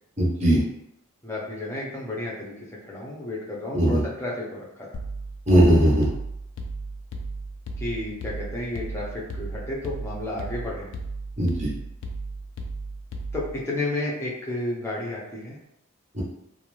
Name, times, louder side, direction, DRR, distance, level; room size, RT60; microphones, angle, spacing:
voice 1, 0.2-0.6 3.7-4.0 5.5-6.1 11.4-11.7 16.1-16.2, right 1 dB, 30° right, -5 dB, 0.7 m, -19 dB
voice 2, 1.2-2.5 2.8-4.9 7.8-10.9 13.3-15.6, left 2 dB, 10° left, -5 dB, 0.6 m, -32 dB
sound 1, 4.9-13.6, right 2 dB, 60° left, 0.3 m, -35 dB
2.5 x 2.1 x 3.0 m, 0.80 s
head